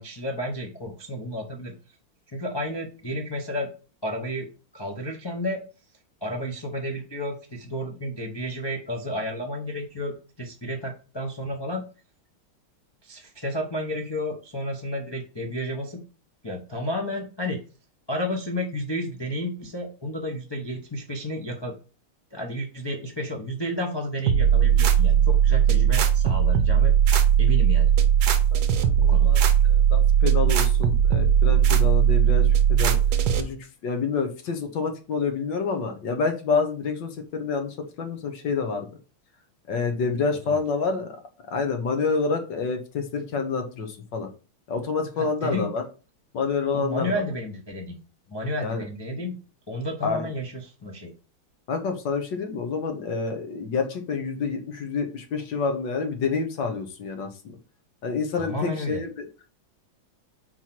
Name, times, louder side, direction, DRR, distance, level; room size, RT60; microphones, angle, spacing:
voice 1, 0.0-1.7 2.3-3.7 4.0-4.5 4.7-5.6 6.2-11.8 13.0-16.0 16.4-17.6 18.1-21.7 22.3-27.9 29.0-29.3 40.5-40.6 45.2-45.7 46.7-48.0 48.3-49.4 49.7-51.1 58.4-59.0, equal, 35° left, 0 dB, 0.4 m, -31 dB
sound 1, 24.3-33.4, right 9 dB, 65° right, 1.1 m, -19 dB
voice 2, 28.5-33.0 33.4-33.6 33.8-38.9 39.7-41.2 41.5-44.3 44.7-45.8 46.3-47.1 48.6-48.8 49.1-49.2 50.0-50.3 51.7-57.5 58.0-59.3, left 5 dB, 60° left, 5 dB, 1.7 m, -28 dB
4.6 x 4.4 x 5.9 m, 0.35 s
omnidirectional pair, 2.3 m